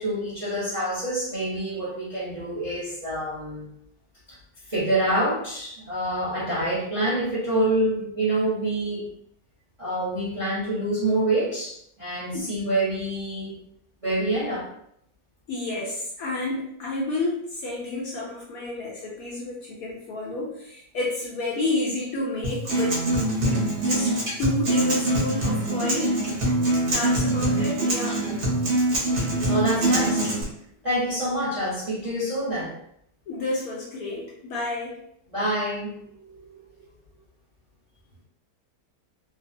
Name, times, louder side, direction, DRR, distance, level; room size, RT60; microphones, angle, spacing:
voice 1, 0.0-3.7 4.7-9.1 9.8-13.6 14.0-14.7 29.1-30.3 30.8-32.7 35.3-36.8, right 1 dB, 35° right, -9 dB, 0.5 m, -27 dB
voice 2, 15.5-23.0 23.8-26.2 26.8-28.2 33.3-35.0, left 2 dB, 70° left, -3 dB, 0.9 m, -30 dB
Acoustic guitar, 22.4-30.4, right 1 dB, 55° right, 0.9 m, -24 dB
2.8 x 2.0 x 2.5 m, 0.72 s
omnidirectional pair, 1.9 m